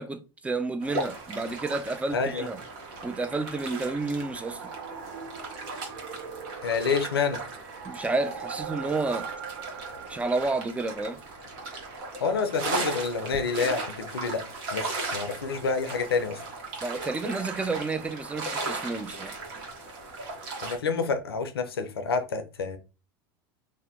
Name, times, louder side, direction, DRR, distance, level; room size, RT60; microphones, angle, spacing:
voice 1, 0.0-2.6 3.0-4.7 7.8-9.3 10.1-11.2 16.8-19.4, right 3 dB, 10° right, 0.4 m, -30 dB
sound 1, 0.8-20.8, right 3 dB, 60° right, 1.0 m, -37 dB
voice 2, 2.1-2.5 6.6-7.4 12.2-14.5 14.7-16.4 20.6-22.8, left 5 dB, 85° left, 0.5 m, -28 dB
sound 2, 3.6-10.5, right 7 dB, 75° right, 0.6 m, -41 dB
2.8 x 2.1 x 3.5 m
hypercardioid pair, 90°, 12 cm